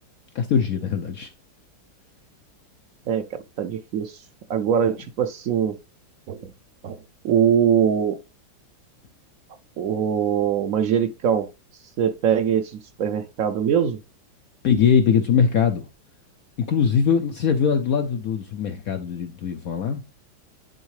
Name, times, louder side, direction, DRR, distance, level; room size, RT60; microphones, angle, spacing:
voice 1, 0.3-1.3 14.6-15.9 16.7-20.1, left 7 dB, 65° left, 0.9 m, -21 dB
voice 2, 3.1-4.1 4.5-5.8 6.3-6.5 6.8-7.0 7.2-8.2 9.8-11.5 12.0-14.0, right 8 dB, 80° right, 0.7 m, -22 dB
10.5 x 3.6 x 3.2 m
omnidirectional pair, 2.1 m